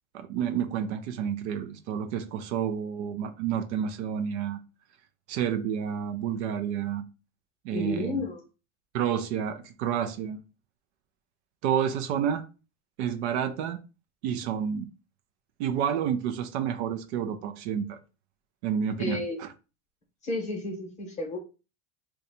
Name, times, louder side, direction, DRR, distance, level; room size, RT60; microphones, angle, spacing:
voice 1, 0.1-4.6 5.3-7.0 7.6-8.2 8.9-10.4 11.6-12.4 13.0-13.8 14.2-14.9 15.6-18.0 18.6-19.5, right 8 dB, 60° right, 0.5 m, -29 dB
voice 2, 7.7-8.4 19.0-19.4 20.2-21.4, left 3 dB, 20° left, 0.9 m, -32 dB
2.7 x 2.3 x 4.0 m
supercardioid pair, 155°, 39 cm